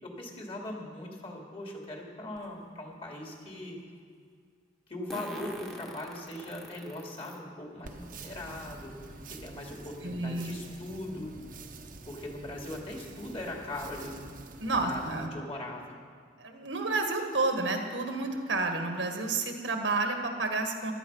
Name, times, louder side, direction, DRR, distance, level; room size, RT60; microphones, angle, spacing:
voice 1, 0.0-3.8 4.9-11.3 12.1-14.2 14.7-16.0, left 1 dB, 30° left, -1 dB, 2.6 m, -40 dB
Fart, 2.4-2.5 5.1-7.4 8.0-8.1 9.4-9.5 9.9-10.0 10.4-10.6, equal, ahead, 1.3 m, -44 dB
sound 1, 7.8-15.3, right 3 dB, 50° right, 1.0 m, -47 dB
voice 2, 10.0-10.6 14.6-15.3 16.4-20.9, right 3 dB, 90° right, 4 dB, 1.8 m, -30 dB
15.0 x 12.0 x 5.6 m, 2.1 s
head